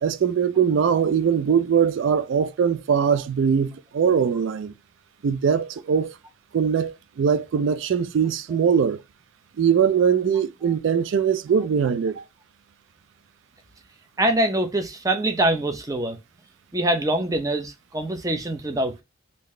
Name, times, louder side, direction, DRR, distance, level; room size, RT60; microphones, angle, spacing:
voice 1, 0.0-4.7 5.2-6.1 6.5-9.0 9.6-12.2, right 7 dB, 70° right, 0.3 m, -21 dB
voice 2, 14.2-16.2 16.7-19.0, right 1 dB, 15° right, 0.6 m, -24 dB
3.8 x 2.7 x 3.2 m
head